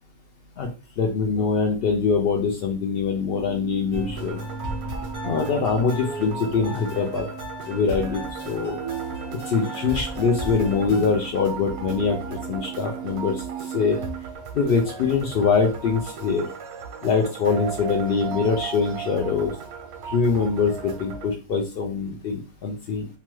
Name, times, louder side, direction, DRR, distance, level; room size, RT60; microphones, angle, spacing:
voice 1, 1.0-4.4 5.2-7.3 7.7-8.8 9.5-13.4 13.7-14.0 14.5-16.5 17.0-19.5 20.1-23.1, left 5 dB, 80° left, 1 dB, 0.5 m, -23 dB
sound 1, 3.2-14.4, right 8 dB, 50° left, 0.8 m, -38 dB
sound 2, 3.9-11.1, equal, 25° left, 0.4 m, -36 dB
sound 3, 4.1-21.3, right 6 dB, 90° right, 1.1 m, -38 dB
3.0 x 2.3 x 3.0 m, 0.33 s
omnidirectional pair, 1.5 m